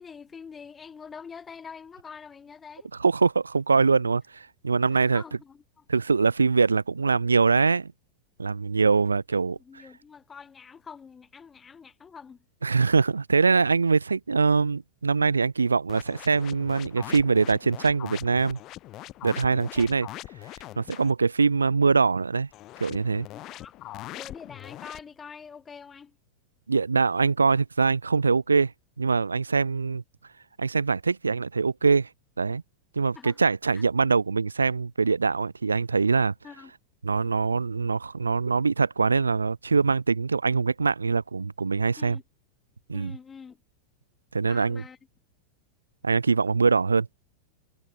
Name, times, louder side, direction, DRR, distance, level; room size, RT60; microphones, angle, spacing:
voice 1, 0.0-2.9 5.1-5.8 9.3-12.4 19.5-19.9 23.3-26.2 33.1-33.4 33.7-33.8 36.4-36.7 42.0-42.2 42.9-43.6 44.5-45.0, left 6 dB, 20° left, 3.6 m, -45 dB
voice 2, 3.0-5.2 5.9-7.9 8.4-9.6 12.6-18.6 19.2-20.1 20.8-22.5 22.8-23.3 26.7-28.7 29.0-30.0 30.6-32.1 32.4-32.6 33.0-36.3 37.0-42.2 42.9-43.1 44.3-44.8 46.0-47.1, right 4 dB, 75° right, 0.7 m, -23 dB
sound 1, 15.9-21.1 22.5-25.0, left 16 dB, 35° left, 2.9 m, -42 dB
figure-of-eight pair, 90°, 0 cm